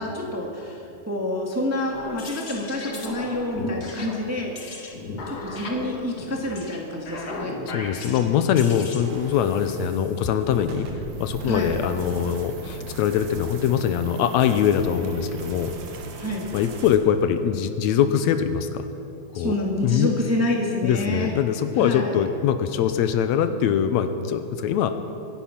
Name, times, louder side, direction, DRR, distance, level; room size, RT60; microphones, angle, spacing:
voice 1, 0.0-4.9 5.3-7.5 11.5-11.8 16.2-16.5 19.3-21.3 21.8-22.2, left 1 dB, 10° right, -1 dB, 1.1 m, -28 dB
sound 1, 1.8-9.0, left 2 dB, 40° left, 1.7 m, -35 dB
voice 2, 7.7-10.9 11.2-15.7 16.5-18.9 19.3-19.5 19.8-20.1 20.8-24.9, left 9 dB, 80° left, 9 dB, 1.9 m, -22 dB
sound 2, 9.0-17.0, right 3 dB, 70° right, 2.6 m, -38 dB
23.5 x 10.5 x 5.9 m, 2.8 s
omnidirectional pair, 3.3 m